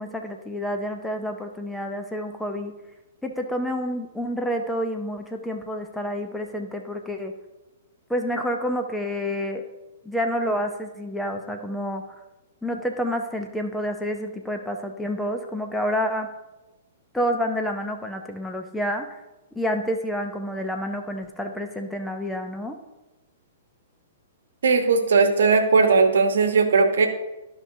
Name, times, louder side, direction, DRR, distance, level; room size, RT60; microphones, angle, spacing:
voice 1, 0.0-2.7 3.2-7.3 8.1-9.6 10.0-12.0 12.6-16.3 17.1-19.2 19.5-22.8, equal, 5° left, 4 dB, 0.6 m, -28 dB
voice 2, 24.6-27.1, right 4 dB, 65° right, 6 dB, 1.1 m, -18 dB
12.5 x 5.5 x 2.7 m, 1.0 s
figure-of-eight pair, 110°, 0 cm